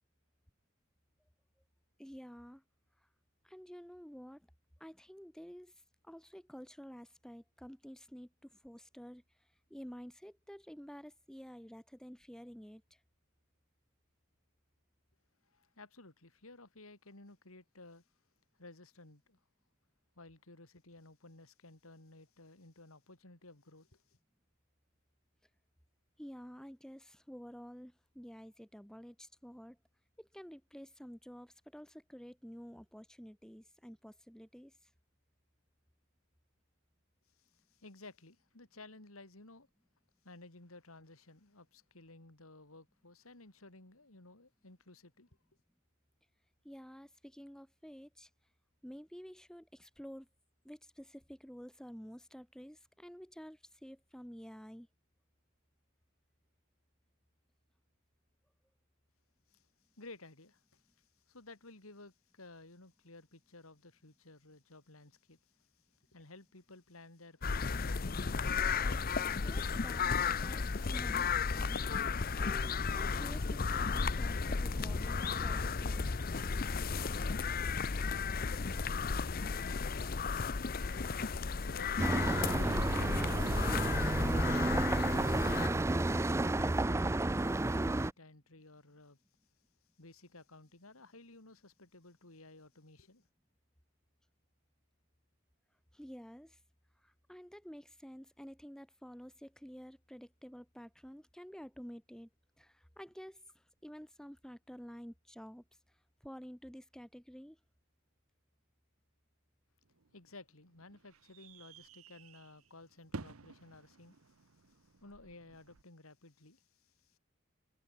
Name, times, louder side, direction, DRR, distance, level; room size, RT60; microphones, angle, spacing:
voice 1, 2.0-2.6 3.4-4.5 4.8-5.7 6.0-9.2 9.7-13.0 26.2-29.8 30.2-34.7 46.6-48.3 48.8-50.3 50.6-54.9 68.8-71.8 72.4-76.1 95.9-96.6 97.0-102.3 102.6-105.6 106.2-107.6, equal, 5° left, 1.4 m, -50 dB
voice 2, 15.5-18.0 18.6-19.4 20.2-24.2 37.4-39.7 40.2-45.3 59.5-59.7 59.9-68.3 80.9-84.1 86.2-89.2 90.0-93.3 110.1-117.2, left 2 dB, 85° left, 3.6 m, -56 dB
sound 1, 67.4-85.7, left 5 dB, 45° left, 0.7 m, -34 dB
sound 2, 82.0-88.1, right 2 dB, 15° right, 0.4 m, -31 dB
sound 3, 109.8-115.8, right 3 dB, 85° right, 0.9 m, -53 dB
head